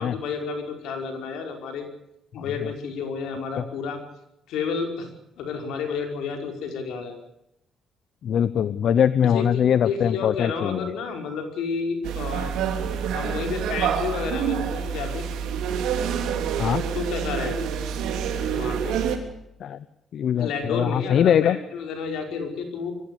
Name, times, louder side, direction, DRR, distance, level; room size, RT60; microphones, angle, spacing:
voice 1, 0.0-1.9 2.3-4.0 4.5-5.1 5.4-7.2 9.3-12.5 13.1-15.3 16.9-17.6 18.5-19.0 20.4-22.9, left 5 dB, 85° left, 4 dB, 5.1 m, -31 dB
voice 2, 8.2-10.9 16.6-16.8 19.6-19.8 20.1-21.6, left 9 dB, 65° left, 16 dB, 0.8 m, -22 dB
sound 1, 12.0-19.2, right 7 dB, 90° right, 3.2 m, -27 dB
23.0 x 16.0 x 8.6 m, 0.83 s
cardioid pair, 90°, 0 cm